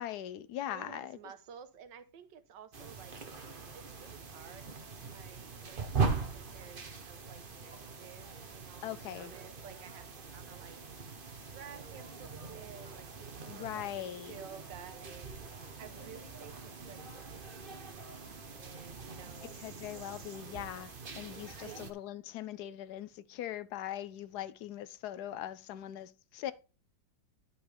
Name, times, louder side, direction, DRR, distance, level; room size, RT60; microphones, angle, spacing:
voice 1, 0.0-1.2 8.8-9.3 13.5-14.4 19.6-26.5, left 12 dB, 70° left, 1.1 m, -41 dB
voice 2, 0.7-3.2 3.7-10.0 10.3-10.8 11.5-15.3 15.8-19.6 21.6-21.9, right 8 dB, 75° right, 1.6 m, -53 dB
sound 1, 2.7-21.9, right 4 dB, 35° right, 1.0 m, -41 dB
11.5 x 5.5 x 3.4 m
omnidirectional pair, 2.0 m